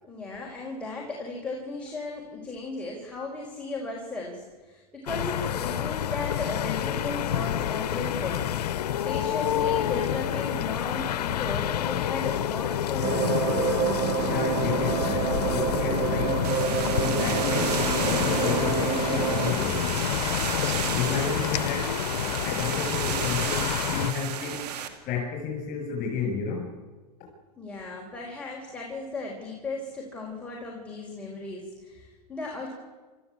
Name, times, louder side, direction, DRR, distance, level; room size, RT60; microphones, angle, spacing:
voice 1, 0.0-8.5 9.0-13.3 27.6-32.7, left 3 dB, 5° left, -3 dB, 4.7 m, -36 dB
sound 1, 5.1-24.1, left 11 dB, 85° left, 0.9 m, -28 dB
sound 2, 13.0-19.5, right 9 dB, 50° right, 2.3 m, -28 dB
voice 2, 14.3-16.5 17.0-20.1 20.9-22.0 22.3-24.7 25.1-26.7, left 5 dB, 40° left, 0 dB, 7.0 m, -31 dB
sound 3, 16.4-24.9, right 9 dB, 80° right, 2.6 m, -33 dB
28.0 x 14.0 x 8.5 m, 1.3 s
hypercardioid pair, 115°, 20 cm